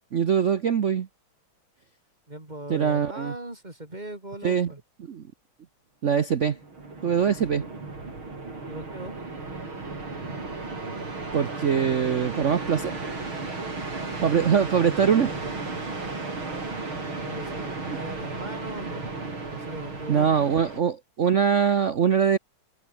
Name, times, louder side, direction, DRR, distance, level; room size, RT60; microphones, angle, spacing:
voice 1, 0.1-1.1 2.7-3.3 4.4-4.7 5.1-5.2 6.0-6.6 7.0-7.6 11.3-12.9 14.2-15.3 20.1-22.4, right 7 dB, 50° right, 1.0 m, -22 dB
voice 2, 2.3-4.8 8.7-9.1 17.2-19.1 19.5-20.5, right 1 dB, 20° right, 4.6 m, -39 dB
sound 1, 6.4-20.8, right 3 dB, 85° right, 6.4 m, -34 dB
omnidirectional pair, 2.2 m